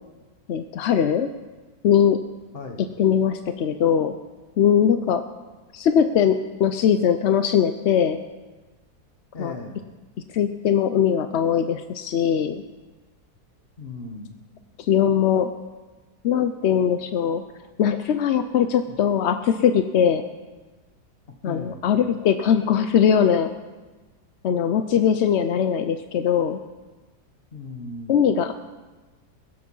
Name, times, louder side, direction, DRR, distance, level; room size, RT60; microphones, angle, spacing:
voice 1, 0.5-1.3 1.8-2.2 3.0-4.1 4.6-5.2 5.7-8.2 9.4-9.6 10.3-12.6 14.8-15.5 16.2-17.4 17.8-20.2 21.4-23.5 24.4-26.6 28.1-28.5, left 8 dB, 65° left, 9 dB, 0.7 m, -20 dB
voice 2, 9.3-9.8 13.8-14.3 18.9-19.0 21.4-21.8 27.5-28.2, left 3 dB, 40° left, 5 dB, 1.5 m, -36 dB
21.0 x 7.8 x 5.5 m, 1.2 s
omnidirectional pair, 1.7 m